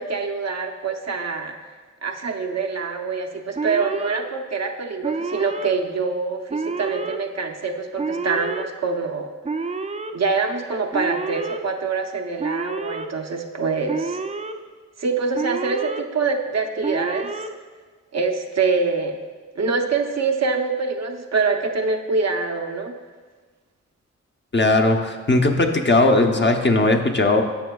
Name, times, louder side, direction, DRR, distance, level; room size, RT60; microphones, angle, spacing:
voice 1, 0.0-1.6 2.0-9.3 10.1-14.2 15.0-17.3 18.1-19.2 19.6-23.0, right 4 dB, 60° right, 4 dB, 0.7 m, -25 dB
Alarm, 3.6-4.2 5.0-5.7 6.5-7.2 8.0-8.6 9.4-10.1 10.9-11.6 12.4-13.1 13.9-14.5 15.3-16.0 16.8-17.5, right 3 dB, 25° right, 0.4 m, -28 dB
voice 2, 24.5-27.4, left 2 dB, 40° left, 3 dB, 0.7 m, -18 dB
11.0 x 7.0 x 2.3 m, 1.4 s
wide cardioid pair, 60°, 29 cm